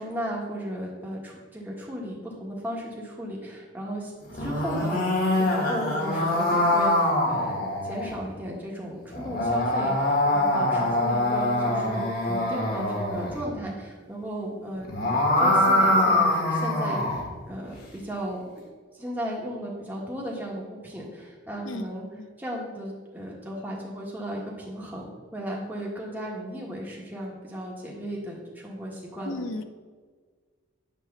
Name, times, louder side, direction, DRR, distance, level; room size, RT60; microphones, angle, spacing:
voice 1, 0.0-18.6 18.9-29.4, equal, 10° right, -3 dB, 1.5 m, -35 dB
sound 1, 4.2-8.1 9.1-13.3 14.7-17.2, left 1 dB, 50° left, 1.7 m, -24 dB
voice 2, 29.2-29.6, left 1 dB, 80° left, 8 dB, 0.7 m, -33 dB
9.2 x 3.4 x 6.7 m, 1.5 s
head